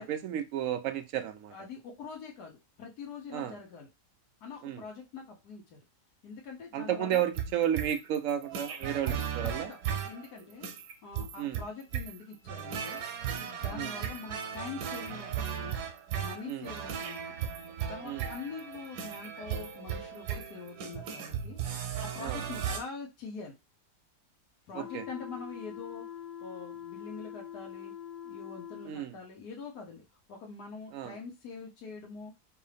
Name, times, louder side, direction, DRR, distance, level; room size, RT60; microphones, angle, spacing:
voice 1, 0.0-1.5 3.3-3.5 4.6-4.8 6.7-9.7 11.4-11.6 13.7-13.9 16.5-16.7 18.0-18.2 22.2-22.4 24.7-25.0 28.9-29.1 30.9-31.2, right 10 dB, 70° right, 0.9 m, -32 dB
voice 2, 1.5-3.9 4.4-5.8 6.2-7.2 8.9-9.8 10.0-10.7 11.0-13.0 13.4-15.8 16.2-17.3 17.9-23.5 24.7-26.1 26.4-27.9 28.2-32.3, left 5 dB, 85° left, 1.5 m, -44 dB
sound 1, 7.1-22.8, right 8 dB, 90° right, 1.3 m, -36 dB
sound 2, 24.7-29.0, left 10 dB, 50° left, 0.8 m, -44 dB
4.7 x 2.6 x 3.3 m
omnidirectional pair, 1.6 m